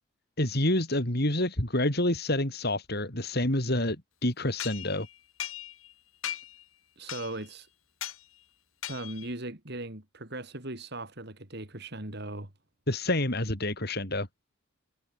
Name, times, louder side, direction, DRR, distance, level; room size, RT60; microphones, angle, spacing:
voice 1, 0.4-4.0 4.2-5.1 12.9-14.3, left 1 dB, 50° left, 4.7 m, -28 dB
sound 1, 4.6-5.9 6.2-6.6 7.1-7.5 8.0-8.2 8.8-9.3, left 11 dB, 75° left, 3.5 m, -38 dB
voice 2, 7.0-7.7 8.9-12.5, right 2 dB, 50° right, 3.4 m, -38 dB
head